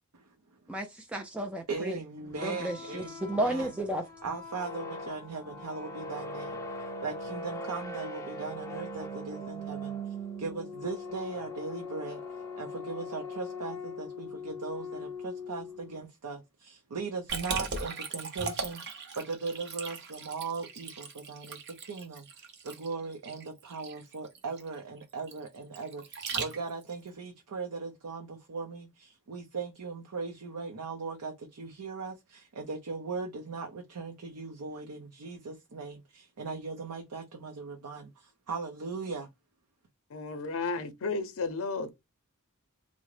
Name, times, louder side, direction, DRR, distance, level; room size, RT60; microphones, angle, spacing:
voice 1, 0.7-2.0 2.4-4.0, right 1 dB, 5° right, 0.3 m, -33 dB
voice 2, 1.7-3.7 4.2-6.6 7.0-12.2 12.6-39.3, right 4 dB, 85° right, 0.6 m, -39 dB
sound 1, 2.3-16.0, left 1 dB, 15° left, 0.7 m, -40 dB
Liquid, 17.3-26.9, right 4 dB, 50° right, 0.7 m, -38 dB
voice 3, 40.1-41.9, left 3 dB, 60° left, 0.5 m, -33 dB
3.6 x 2.0 x 3.1 m
head